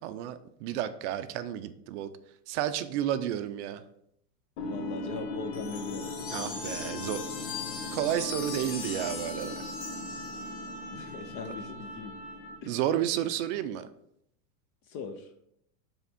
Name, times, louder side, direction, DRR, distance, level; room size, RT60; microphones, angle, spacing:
voice 1, 0.0-2.1 2.5-3.8 6.3-7.2 7.9-9.5 12.7-13.9, right 11 dB, 50° right, 11 dB, 0.5 m, -31 dB
sound 1, 4.6-12.8, left 2 dB, 75° left, 1.3 m, -38 dB
voice 2, 4.6-6.2 10.9-12.1 12.6-12.8 14.9-15.3, left 5 dB, 30° left, 6 dB, 0.4 m, -40 dB
sound 2, 5.5-10.9, left 5 dB, 55° left, 1.6 m, -41 dB
7.0 x 3.5 x 4.1 m, 0.75 s
supercardioid pair, 130°, 48 cm